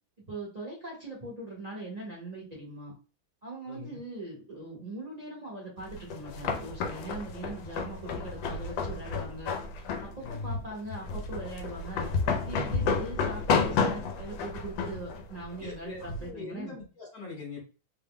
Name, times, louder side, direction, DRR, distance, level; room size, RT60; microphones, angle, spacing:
voice 1, 0.3-2.9 3.4-9.6 10.0-12.0 12.4-16.7, right 2 dB, 30° right, -5 dB, 0.7 m, -41 dB
voice 2, 3.7-4.0 10.2-10.6 12.8-12.9 15.6-17.6, left 4 dB, 55° left, -3 dB, 1.4 m, -41 dB
sound 1, 5.9-16.3, left 5 dB, 75° left, 1.3 m, -31 dB
3.5 x 2.1 x 3.6 m, 0.35 s
omnidirectional pair, 2.1 m